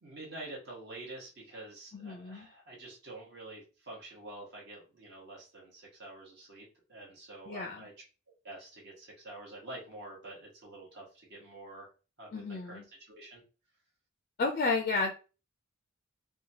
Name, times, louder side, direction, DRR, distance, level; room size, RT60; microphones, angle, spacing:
voice 1, 0.0-7.9 8.4-11.9 12.2-13.4, right 2 dB, 55° right, -3 dB, 1.1 m, -47 dB
voice 2, 1.9-2.5 7.5-7.9 12.3-12.8 14.4-15.1, left 3 dB, 40° left, 2 dB, 0.4 m, -32 dB
2.8 x 2.3 x 2.7 m, 0.33 s
head